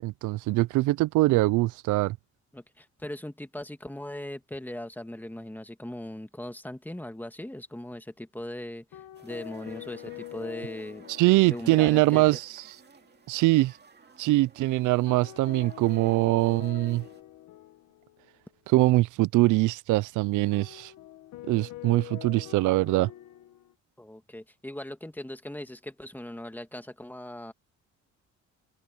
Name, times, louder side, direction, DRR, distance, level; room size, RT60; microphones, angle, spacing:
voice 1, 0.0-2.2 11.2-12.4 13.3-13.7 14.2-17.0 18.7-20.9 21.5-23.1, right 19 dB, 80° right, 0.5 m, -23 dB
voice 2, 2.5-11.0 11.4-12.2 24.0-27.5, left 1 dB, 5° left, 1.9 m, -39 dB
sound 1, 8.9-12.4 12.7-12.8 15.1-18.4 20.5-23.7, left 15 dB, 80° left, 1.6 m, -45 dB
sound 2, 9.1-17.2, right 5 dB, 35° right, 2.3 m, -55 dB
open air
cardioid pair, 90°, 30 cm